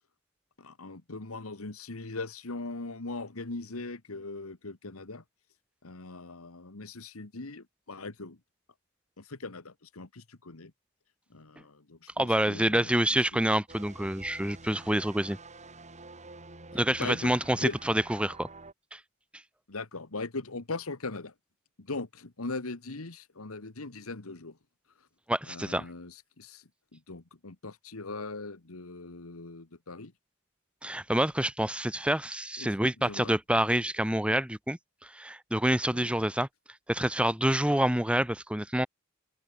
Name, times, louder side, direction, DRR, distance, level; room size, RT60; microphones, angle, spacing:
voice 1, 0.6-5.2 5.8-8.4 9.2-10.7 11.3-13.4 17.0-17.8 19.7-21.3 21.8-24.6 25.5-30.1 32.6-32.7 33.0-33.3 35.9-36.1, left 3 dB, 85° left, 1.7 m, -40 dB
voice 2, 12.2-15.4 16.7-18.5 18.9-19.0 25.3-25.8 30.8-36.5 36.9-38.9, right 1 dB, 5° right, 1.3 m, -27 dB
sound 1, 13.7-18.7, right 3 dB, 35° right, 6.9 m, -48 dB
open air
head